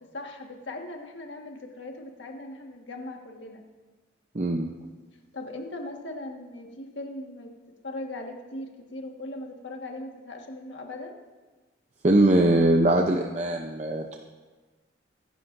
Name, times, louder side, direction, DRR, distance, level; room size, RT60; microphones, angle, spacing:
voice 1, 0.0-3.6 5.3-7.5 7.8-11.2, left 2 dB, 75° left, 2 dB, 1.6 m, -39 dB
voice 2, 4.3-4.7 12.0-14.2, right 1 dB, 35° right, 2 dB, 0.6 m, -21 dB
23.0 x 11.0 x 2.6 m, 1.3 s
head